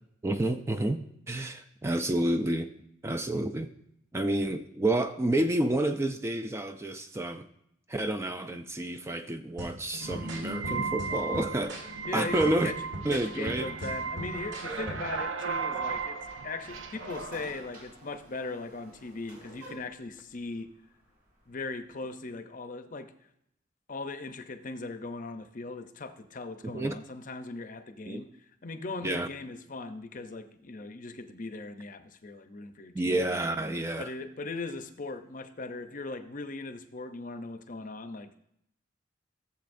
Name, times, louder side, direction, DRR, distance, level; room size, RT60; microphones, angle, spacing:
voice 1, 0.2-2.7 3.0-3.7 4.1-7.5 7.9-12.7 13.0-13.7 14.7-14.9 26.6-27.0 28.1-28.2 29.0-29.3 32.9-34.1, right 1 dB, 15° right, 8 dB, 0.4 m, -29 dB
sound 1, 9.6-15.2, right 1 dB, 65° right, 1.6 m, -41 dB
sound 2, 10.0-17.5, right 4 dB, 90° right, 0.7 m, -36 dB
voice 2, 12.0-12.8 13.1-20.7 21.5-23.1 23.9-33.2 34.0-38.4, left 3 dB, 45° left, 9 dB, 0.6 m, -39 dB
sound 3, 16.6-21.9, right 1 dB, 50° right, 3.4 m, -52 dB
15.0 x 7.3 x 2.6 m, 0.74 s
head